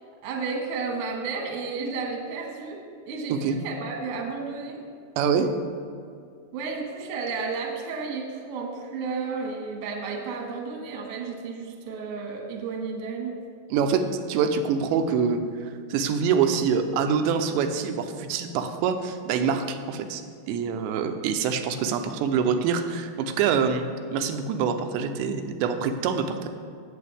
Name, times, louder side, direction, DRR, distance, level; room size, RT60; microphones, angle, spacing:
voice 1, 0.2-2.8 3.1-4.8 6.5-13.3, right 4 dB, 55° right, 0 dB, 1.6 m, -32 dB
voice 2, 3.3-3.6 5.2-5.5 13.7-15.4 15.9-20.2 20.5-26.5, right 6 dB, 85° right, 7 dB, 2.9 m, -25 dB
18.0 x 7.8 x 3.4 m, 2.3 s
omnidirectional pair, 5.0 m